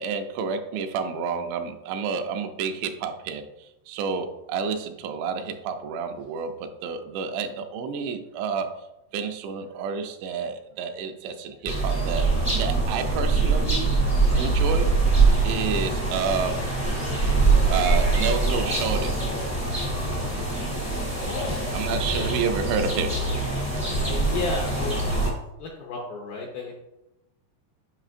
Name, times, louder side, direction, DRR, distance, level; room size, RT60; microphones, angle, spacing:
voice 1, 0.0-3.5 3.9-8.7 9.1-13.9 14.4-14.9 15.4-16.6 17.7-19.2 21.7-24.3, right 6 dB, 85° right, 6 dB, 2.8 m, -30 dB
sound 1, 11.6-25.3, right 3 dB, 25° left, 0.3 m, -23 dB
voice 2, 21.2-21.7 22.0-22.4 24.0-25.0 25.3-25.4 25.6-26.7, left 4 dB, 80° left, -1 dB, 2.2 m, -33 dB
8.8 x 5.7 x 2.5 m, 0.91 s
omnidirectional pair, 5.2 m